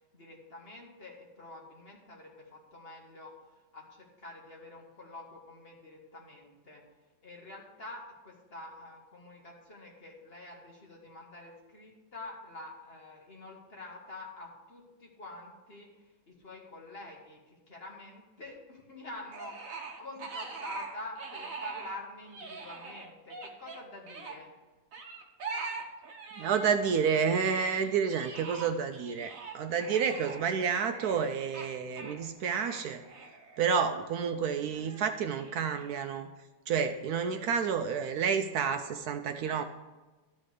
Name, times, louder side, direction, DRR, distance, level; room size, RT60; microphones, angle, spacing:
voice 1, 0.1-3.3 3.7-6.8 7.2-24.5, left 2 dB, 35° left, -1 dB, 1.7 m, -47 dB
sound 1, 19.3-22.0 22.2-24.4 24.9-26.9 27.1-34.1 34.7-36.1, right 4 dB, 55° right, 1.4 m, -43 dB
voice 2, 26.4-33.0 33.6-36.3 36.7-39.6, right 6 dB, 70° right, 8 dB, 1.0 m, -30 dB
12.5 x 4.2 x 6.5 m, 1.2 s
omnidirectional pair, 1.8 m